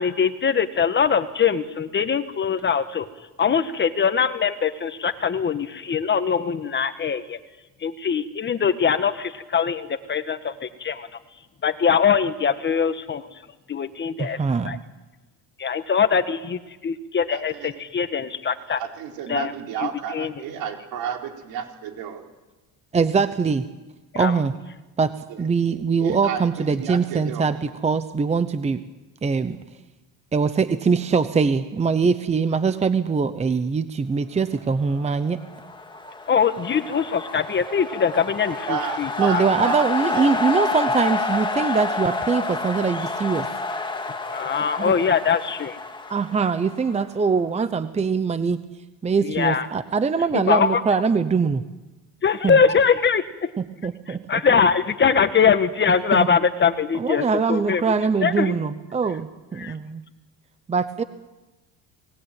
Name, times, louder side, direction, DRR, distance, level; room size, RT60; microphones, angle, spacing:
voice 1, 0.0-3.1 3.4-7.4 7.8-11.1 11.6-13.3 13.7-14.4 14.6-14.8 15.6-18.8 19.3-19.5 19.8-20.4 24.1-24.3 36.3-39.5 44.3-45.7 49.2-49.7 50.3-50.8 52.2-53.2 54.3-57.9 58.2-58.5 59.6-59.7, left 6 dB, 30° left, 11 dB, 1.4 m, -22 dB
voice 2, 14.2-14.8 22.9-23.6 24.1-24.5 25.0-25.1 25.4-28.8 29.2-29.6 30.3-35.4 39.2-43.5 44.8-44.9 46.1-48.6 49.0-51.6 52.4-52.6 53.8-54.4 56.1-56.3 57.0-60.0 60.7-61.0, right 5 dB, 15° right, 12 dB, 0.9 m, -22 dB
voice 3, 17.3-17.7 18.8-22.2 25.3-25.4 26.0-26.5 26.8-27.6 38.7-39.8 40.1-40.3, right 8 dB, 70° right, 4 dB, 4.2 m, -31 dB
sound 1, 35.3-47.2, left 3 dB, 10° left, 2.2 m, -29 dB
28.5 x 19.5 x 9.1 m, 1.1 s
cardioid pair, 130°, 37 cm